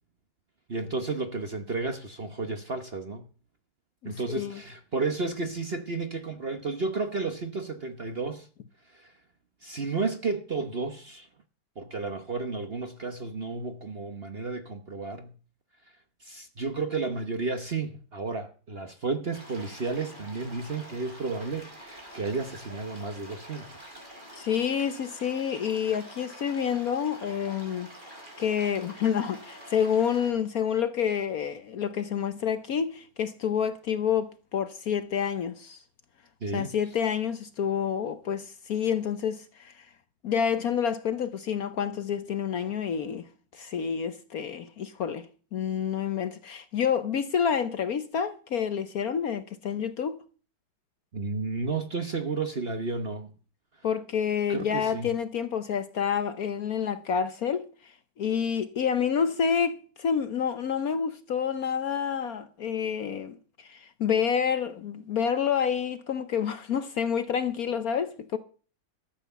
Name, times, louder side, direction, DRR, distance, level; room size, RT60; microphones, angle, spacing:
voice 1, 0.7-3.3 4.0-8.5 8.9-9.1 9.6-11.3 11.8-15.3 16.2-24.0 36.4-36.7 51.1-53.3 54.5-55.1, right 3 dB, 40° right, 1.0 m, -32 dB
voice 2, 4.0-4.6 24.3-35.8 36.5-39.9 40.2-45.3 45.5-50.2 53.8-68.4, left 7 dB, 60° left, 1.1 m, -28 dB
sound 1, 19.3-30.3, right 1 dB, 25° right, 5.6 m, -47 dB
13.0 x 8.3 x 6.9 m
omnidirectional pair, 2.1 m